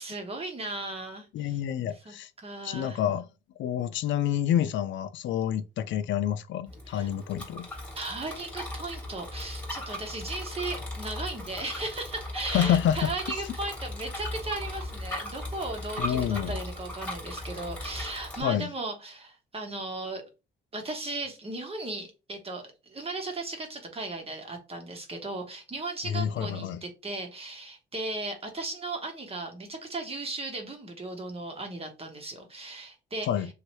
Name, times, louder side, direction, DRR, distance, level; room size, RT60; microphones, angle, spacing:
voice 1, 0.0-1.6 2.0-3.0 6.9-7.1 7.9-20.2 20.7-33.3, right 2 dB, 30° right, 1.2 m, -36 dB
voice 2, 1.3-2.3 2.6-3.2 3.6-7.7 12.5-13.1 16.0-16.6 18.4-18.7 26.0-26.8 33.2-33.5, left 10 dB, 70° left, 0.4 m, -28 dB
Bicycle, 6.7-18.4, left 1 dB, 5° left, 1.6 m, -37 dB
2.9 x 2.8 x 3.0 m
cardioid pair, 90°, 20 cm